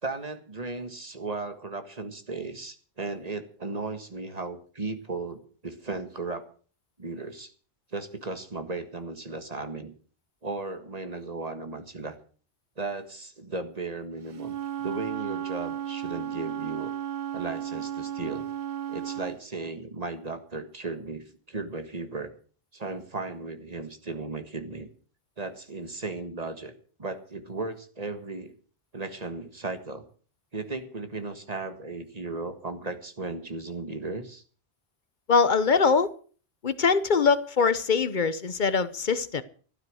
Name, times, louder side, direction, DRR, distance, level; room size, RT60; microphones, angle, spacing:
voice 1, 0.0-6.4 7.0-7.5 7.9-9.9 10.4-12.2 12.8-14.6 14.8-16.9 17.3-18.5 18.9-22.3 22.7-24.9 25.4-26.7 27.0-28.5 28.9-30.0 30.5-34.4, right 3 dB, 40° right, 8 dB, 1.7 m, -36 dB
Wind instrument woodwind instrument, 14.3-19.4, right 10 dB, 60° right, 1.0 m, -34 dB
voice 2, 35.3-36.1 36.6-39.4, left 5 dB, 50° left, 14 dB, 1.0 m, -23 dB
13.0 x 12.0 x 6.4 m, 0.42 s
omnidirectional pair, 1.1 m